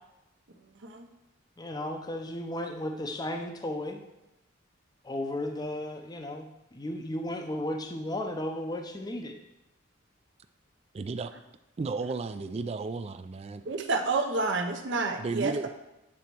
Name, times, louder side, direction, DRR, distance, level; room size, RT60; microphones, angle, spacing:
voice 1, 1.6-4.0 5.0-6.5 6.7-9.3, left 1 dB, 20° left, 4 dB, 0.6 m, -34 dB
voice 2, 10.9-11.3 11.8-13.7 15.2-15.7, right 3 dB, 30° right, 11 dB, 0.3 m, -33 dB
voice 3, 13.7-15.7, right 3 dB, 60° right, 5 dB, 0.7 m, -29 dB
8.5 x 4.1 x 4.5 m, 0.92 s
head